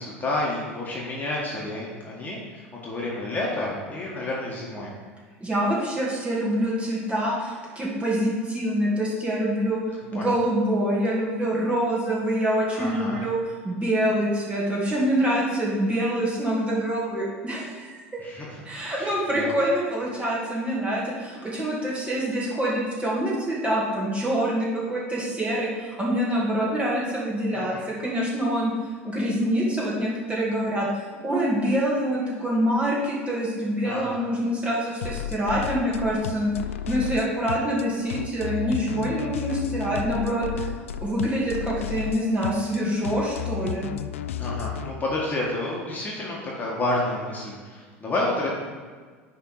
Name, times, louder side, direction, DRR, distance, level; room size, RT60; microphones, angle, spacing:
voice 1, 0.0-4.9 10.1-10.3 12.8-13.2 18.2-18.6 18.9-19.5 27.5-27.8 33.8-34.2 44.4-48.5, left 2 dB, 25° left, -4 dB, 1.7 m, -30 dB
voice 2, 5.4-13.4 13.6-18.2 18.6-28.7 29.0-30.9 31.2-36.5 36.9-40.7 41.0-43.9, equal, 15° right, -5 dB, 2.3 m, -25 dB
sound 1, 35.0-44.9, left 9 dB, 75° left, 0.4 m, -33 dB
10.0 x 3.7 x 4.7 m, 1.5 s
figure-of-eight pair, 75°, 7 cm